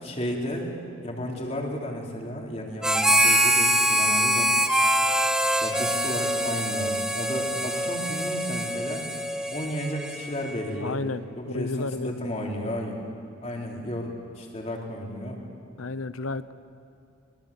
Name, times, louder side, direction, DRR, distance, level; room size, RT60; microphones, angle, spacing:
voice 1, 0.0-0.7 1.0-4.6 5.6-9.1 9.5-11.0 11.4-13.0 13.4-15.4, equal, 30° left, -1 dB, 3.6 m, -33 dB
Harmonica, 2.8-10.6, equal, 5° right, 1.1 m, -24 dB
voice 2, 10.8-12.3 15.8-16.5, left 3 dB, 85° left, 14 dB, 0.9 m, -32 dB
24.5 x 23.5 x 8.5 m, 2.4 s
head